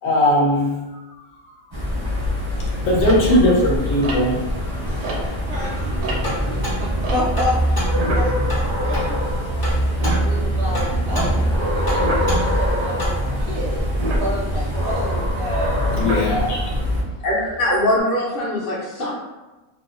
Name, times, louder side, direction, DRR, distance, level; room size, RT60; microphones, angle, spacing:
voice 1, 0.0-0.8 2.9-4.5 4.7-4.8 15.9-16.6, left 1 dB, 75° left, -3 dB, 1.0 m, -18 dB
sound 1, 1.7-17.0, equal, 30° right, 0.5 m, -23 dB
sound 2, 3.0-5.6 5.9-9.4 9.7-9.8 10.0-10.9 12.0-12.3 13.9-16.8 17.4-18.0, right 1 dB, 80° right, 1.0 m, -31 dB
voice 2, 5.2-5.9 6.4-7.6 8.0-9.3 10.1-16.0, left 1 dB, 65° right, -4 dB, 0.7 m, -30 dB
sound 3, 6.2-13.3, right 1 dB, 25° left, 0.5 m, -31 dB
voice 3, 17.2-19.1, left 1 dB, 50° left, -9 dB, 0.8 m, -21 dB
2.6 x 2.0 x 2.4 m, 1.1 s
omnidirectional pair, 1.4 m